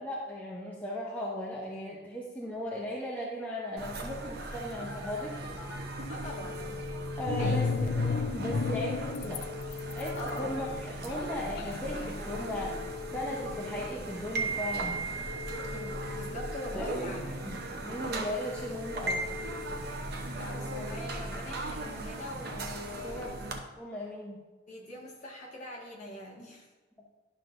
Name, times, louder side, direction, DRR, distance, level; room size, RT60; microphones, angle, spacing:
voice 1, 0.0-5.3 7.2-9.4 9.9-12.7 13.1-15.0 16.7-17.1 17.4-17.6 17.8-19.2 23.0-23.3 23.8-24.4, equal, 10° left, -5 dB, 0.8 m, -37 dB
sound 1, 3.8-23.6, right 2 dB, 55° right, 0.8 m, -38 dB
Telephone, 4.8-5.8 6.3-7.8 9.3-10.8 12.3-13.8 15.3-16.8 18.3-19.8, left 7 dB, 80° left, 1.1 m, -43 dB
voice 2, 6.1-6.7 7.4-7.8 10.2-10.6 15.7-17.4 20.4-23.4 24.7-26.7, left 1 dB, 40° left, -4 dB, 1.7 m, -42 dB
sound 2, 7.3-9.4 9.7-13.1, left 4 dB, 55° left, 0.4 m, -33 dB
11.5 x 6.1 x 2.6 m, 1.3 s
head